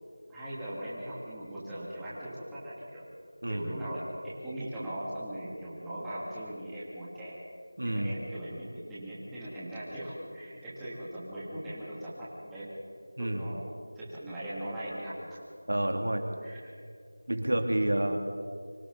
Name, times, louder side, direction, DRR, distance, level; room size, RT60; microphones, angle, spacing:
voice 1, 0.3-3.0 3.5-4.0 4.4-7.4 7.8-12.7 13.2-13.6 13.9-15.1 16.4-16.7, right 1 dB, 5° right, -11 dB, 2.8 m, -39 dB
voice 2, 7.8-8.1 13.2-13.5 15.7-16.2 17.3-18.2, right 1 dB, 80° right, 4 dB, 2.7 m, -29 dB
28.5 x 25.0 x 4.1 m, 2.3 s
figure-of-eight pair, 175°, 0 cm